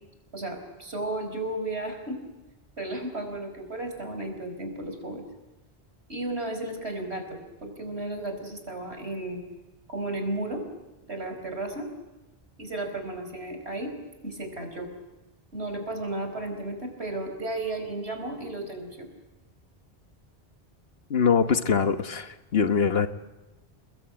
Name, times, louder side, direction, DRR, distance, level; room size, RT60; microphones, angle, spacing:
voice 1, 0.3-2.2 2.8-5.2 6.1-9.4 9.9-10.6 11.1-11.9 12.6-13.9 14.2-14.9 15.5-19.1, right 2 dB, 90° right, 5 dB, 5.2 m, -34 dB
voice 2, 21.1-23.1, left 6 dB, 70° left, 9 dB, 1.5 m, -23 dB
29.0 x 21.0 x 8.8 m, 1.1 s
omnidirectional pair, 1.1 m